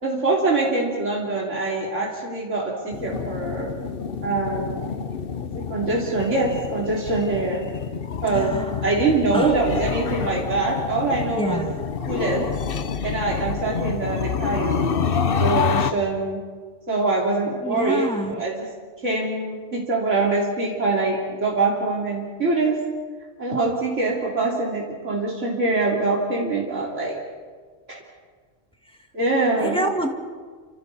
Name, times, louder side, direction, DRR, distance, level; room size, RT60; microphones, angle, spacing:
voice 1, 0.0-3.7 4.2-4.9 5.5-7.6 8.2-11.7 12.1-12.5 13.0-14.9 15.3-16.4 16.9-18.7 19.0-22.8 23.4-27.2 27.9-28.0 29.1-29.8, right 3 dB, 80° right, -3 dB, 3.5 m, -24 dB
sound 1, 2.9-15.9, left 6 dB, 50° left, 1.1 m, -27 dB
voice 2, 8.3-8.8 9.3-9.5 11.4-11.8 17.6-18.3 29.6-30.1, equal, 5° left, 3 dB, 2.0 m, -26 dB
29.5 x 26.5 x 4.2 m, 1.5 s
omnidirectional pair, 1.2 m